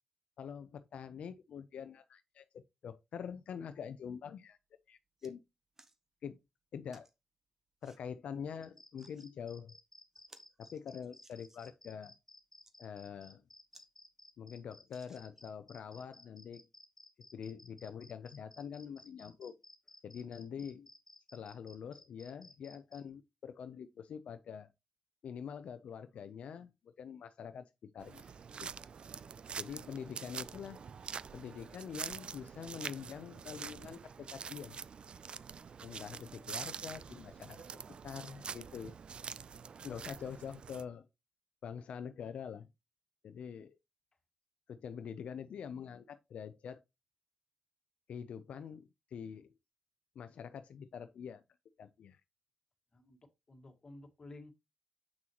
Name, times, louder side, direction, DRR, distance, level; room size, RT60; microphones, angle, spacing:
voice 1, 0.4-4.6 4.9-5.4 6.2-6.4 6.7-7.1 7.8-9.8 10.6-12.1 12.8-13.4 14.4-16.7 17.3-19.5 20.0-20.9 21.3-24.7 25.2-28.7 29.6-30.8 31.3-34.8 35.8-38.9 39.8-41.1 41.6-42.7 43.2-43.8 44.7-46.8 48.1-49.5 50.2-51.4 51.8-52.2, left 7 dB, 80° left, 0.5 m, -45 dB
sound 1, 4.5-4.6 4.9-5.3 5.8-6.0 6.9-7.1 7.8-8.0 8.8-9.3 9.7-9.8 10.1-11.8 12.4-12.8 13.3-13.4 13.7-13.9 14.2-14.3 14.9-15.6 16.2-16.3, right 2 dB, 20° right, 0.9 m, -63 dB
sound 2, 8.6-23.0, left 1 dB, 10° left, 3.4 m, -58 dB
sound 3, 28.0-40.8, right 6 dB, 50° right, 0.3 m, -46 dB
voice 2, 52.9-54.5, left 2 dB, 35° left, 1.7 m, -54 dB
7.4 x 6.2 x 2.9 m
wide cardioid pair, 115°, 2 cm